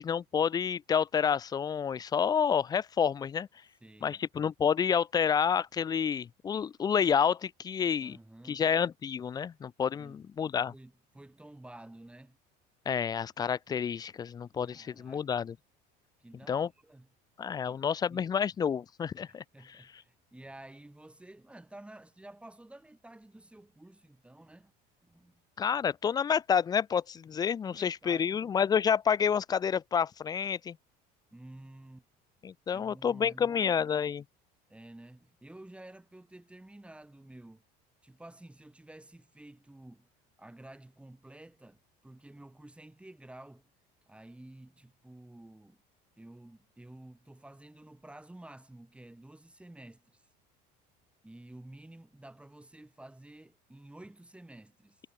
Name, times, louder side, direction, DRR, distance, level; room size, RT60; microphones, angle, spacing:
voice 1, 0.0-3.5 4.0-8.2 8.5-10.7 12.9-15.6 16.5-16.7 17.4-19.8 25.6-30.8 32.4-34.2, left 7 dB, 20° left, 0.4 m, -29 dB
voice 2, 3.8-4.2 8.0-8.6 9.9-10.2 10.7-12.4 14.7-15.5 16.2-17.1 17.6-18.4 19.3-24.7 25.0-25.4 27.6-28.5 31.3-32.1 32.7-33.7 34.7-37.6 38.0-40.1 40.4-43.7 44.1-45.8 46.2-50.2 51.2-55.0, right 1 dB, 5° right, 7.5 m, -51 dB
cardioid pair, 140°, 20 cm